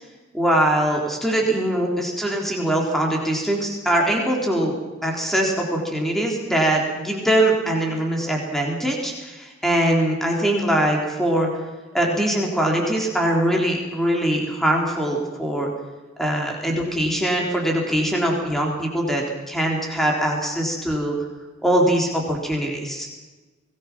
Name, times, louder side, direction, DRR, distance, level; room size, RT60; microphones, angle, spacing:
voice 1, 0.3-4.7 5.0-11.5 11.9-15.7 16.2-21.2 21.6-23.1, right 1 dB, ahead, 0 dB, 3.8 m, -22 dB
25.0 x 19.5 x 6.2 m, 1.2 s
head